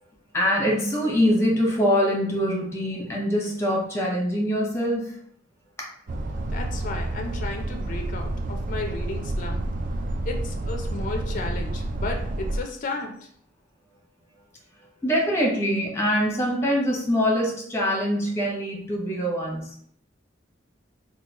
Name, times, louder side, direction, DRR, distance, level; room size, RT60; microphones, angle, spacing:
voice 1, 0.3-5.2 5.8-5.9 14.8-19.7, equal, 15° left, -2 dB, 0.8 m, -24 dB
sound 1, 6.1-12.6, right 1 dB, 45° right, 0.3 m, -29 dB
voice 2, 6.5-9.6 10.3-13.1, left 3 dB, 45° left, 3 dB, 0.4 m, -33 dB
3.7 x 2.3 x 2.9 m, 0.63 s
head